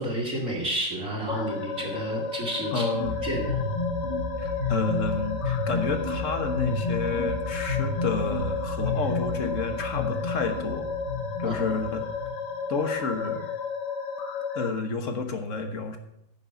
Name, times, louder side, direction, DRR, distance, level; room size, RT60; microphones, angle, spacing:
voice 1, 0.0-2.8 3.2-3.6 11.4-11.6, right 1 dB, 45° right, -3 dB, 2.8 m, -30 dB
sound 1, 1.3-14.7, left 5 dB, 85° left, 1.8 m, -33 dB
voice 2, 2.7-3.2 4.4-10.9 11.4-12.1 12.7-13.5 14.5-16.0, left 4 dB, 50° left, 7 dB, 1.5 m, -30 dB
sound 2, 2.9-12.5, left 2 dB, 75° right, 2.7 m, -31 dB
10.0 x 6.6 x 7.9 m, 0.78 s
omnidirectional pair, 1.8 m